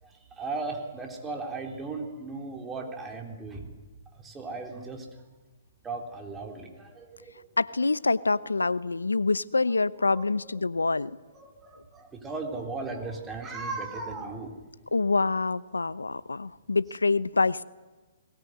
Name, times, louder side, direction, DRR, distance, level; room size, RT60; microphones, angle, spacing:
voice 1, 0.0-3.7 4.1-5.1 5.8-7.3 10.0-10.9 11.3-14.6, right 3 dB, 15° right, 1 dB, 3.9 m, -37 dB
voice 2, 7.6-11.1 14.9-17.6, left 3 dB, 90° left, 17 dB, 0.8 m, -26 dB
22.0 x 19.5 x 9.6 m, 1.3 s
hypercardioid pair, 130°, 0 cm